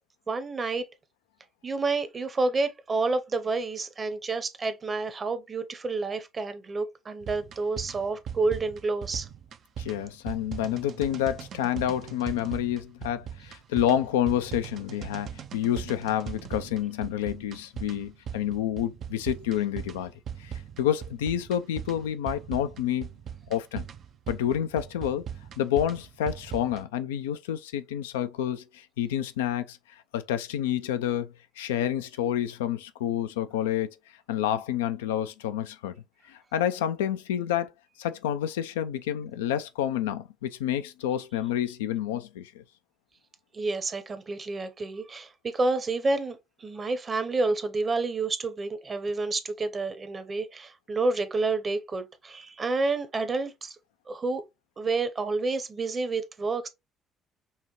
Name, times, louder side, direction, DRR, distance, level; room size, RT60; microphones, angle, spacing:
voice 1, 0.3-0.9 1.6-9.3 43.5-53.8 54.1-54.4 54.8-56.7, right 3 dB, 35° right, 0.8 m, -29 dB
sound 1, 7.2-26.8, right 8 dB, 55° right, 0.4 m, -40 dB
voice 2, 9.8-20.1 20.4-23.1 23.5-23.8 24.3-25.2 25.6-29.8 30.1-31.3 31.6-33.9 34.3-35.9 36.3-37.7 38.0-42.6, left 11 dB, 80° left, 0.3 m, -29 dB
5.6 x 2.1 x 2.9 m
hypercardioid pair, 50°, 0 cm